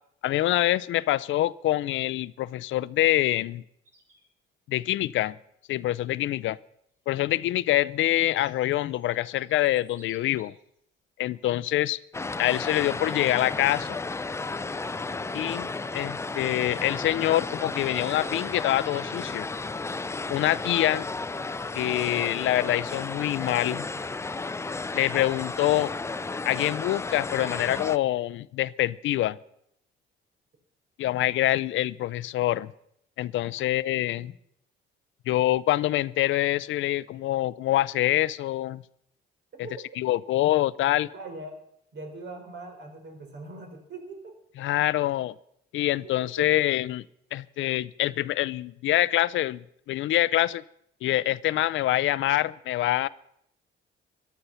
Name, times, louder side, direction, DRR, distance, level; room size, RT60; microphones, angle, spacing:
voice 1, 0.2-3.6 4.7-5.4 5.7-6.6 7.1-10.5 11.2-12.0 12.4-14.0 15.3-15.7 15.9-19.5 20.3-21.1 21.7-23.9 24.9-25.9 26.4-29.4 31.0-32.7 33.2-34.3 35.3-38.8 40.0-41.1 44.6-45.3 45.7-47.0 47.3-50.6 51.0-53.1, left 14 dB, 75° left, 19 dB, 0.5 m, -25 dB
sound 1, 3.8-4.3 5.8-5.9 7.0-10.8 11.4-11.6 12.2-12.5, equal, 15° right, 6.7 m, -60 dB
sound 2, 12.1-28.0, left 3 dB, 15° left, 0.4 m, -33 dB
voice 2, 41.1-41.6 41.9-44.4 46.0-46.5, right 2 dB, 60° right, 4 dB, 3.8 m, -41 dB
15.0 x 11.5 x 5.7 m, 0.73 s
cardioid pair, 90°, 20 cm